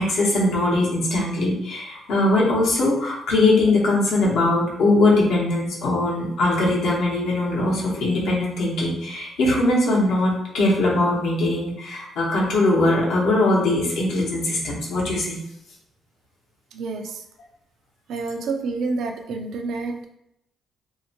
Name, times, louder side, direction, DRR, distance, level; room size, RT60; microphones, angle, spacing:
voice 1, 0.0-15.4, left 2 dB, 80° left, -4 dB, 0.9 m, -21 dB
voice 2, 16.7-17.2 18.1-20.1, right 3 dB, 75° right, 4 dB, 0.4 m, -28 dB
2.7 x 2.1 x 2.7 m, 0.79 s
cardioid pair, 90°, 0 cm